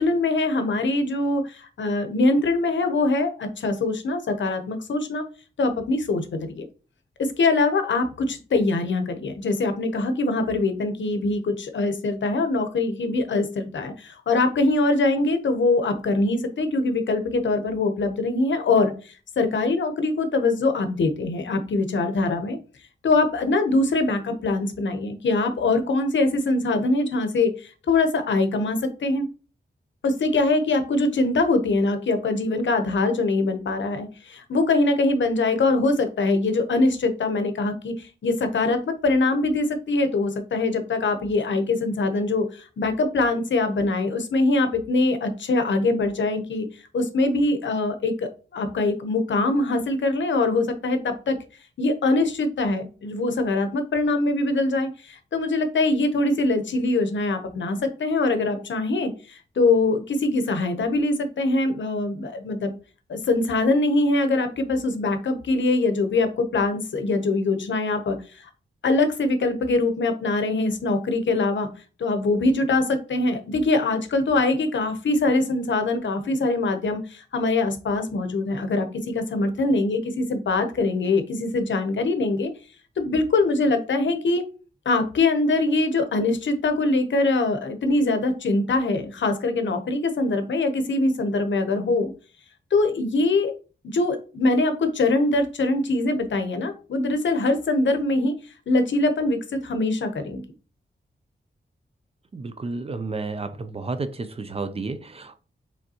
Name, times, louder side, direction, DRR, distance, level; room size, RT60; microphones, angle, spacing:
voice 1, 0.0-5.2 5.6-6.7 7.2-22.6 23.0-29.3 30.0-46.6 46.9-51.4 51.8-62.7 63.1-68.5 68.8-71.7 72.0-78.9 79.1-82.5 83.0-84.4 84.9-92.1 92.7-93.5 93.9-98.3 98.7-100.4, left 2 dB, 75° left, 0.8 m, -23 dB
voice 2, 102.3-105.4, right 3 dB, 30° right, 0.4 m, -31 dB
5.0 x 3.5 x 2.8 m
wide cardioid pair, 165°, 19 cm